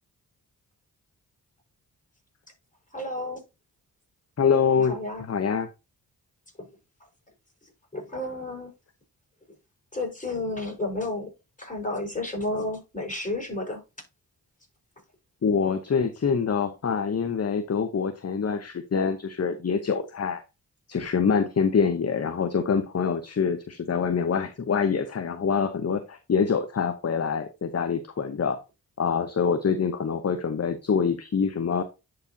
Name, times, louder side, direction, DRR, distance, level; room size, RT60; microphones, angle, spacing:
voice 1, 2.9-3.4 4.8-5.2 6.6-6.7 7.6-8.7 9.9-11.3 11.6-13.8, left 2 dB, 20° left, 5.0 m, -32 dB
voice 2, 4.4-5.7 15.4-20.4 20.9-28.6 29.0-31.8, left 6 dB, 40° left, 0.9 m, -25 dB
10.5 x 4.9 x 2.8 m
supercardioid pair, 45°, 39 cm